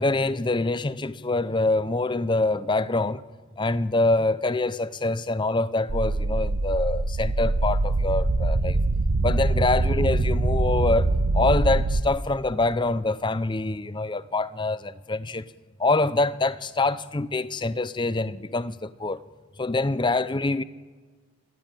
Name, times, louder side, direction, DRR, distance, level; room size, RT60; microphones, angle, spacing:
voice 1, 0.0-3.2 3.6-8.8 9.2-15.5 15.8-19.2 19.6-20.6, left 2 dB, 20° left, 0.5 m, -25 dB
sound 1, 5.9-12.0, right 2 dB, 90° right, 1.0 m, -23 dB
26.5 x 12.5 x 9.0 m
head